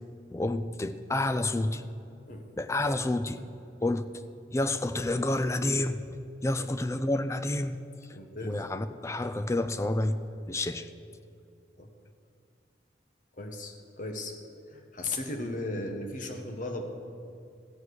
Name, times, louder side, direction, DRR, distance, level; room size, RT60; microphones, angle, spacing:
voice 1, 0.3-1.8 2.6-3.4 3.8-4.1 4.5-6.0 6.4-7.8 8.4-10.2 10.5-10.9, left 2 dB, 15° left, 11 dB, 0.4 m, -29 dB
voice 2, 8.1-8.6 10.7-10.8 11.8-11.9 13.4-14.4 14.7-16.9, left 2 dB, 45° left, 4 dB, 1.2 m, -36 dB
15.5 x 7.4 x 6.3 m, 2.5 s
head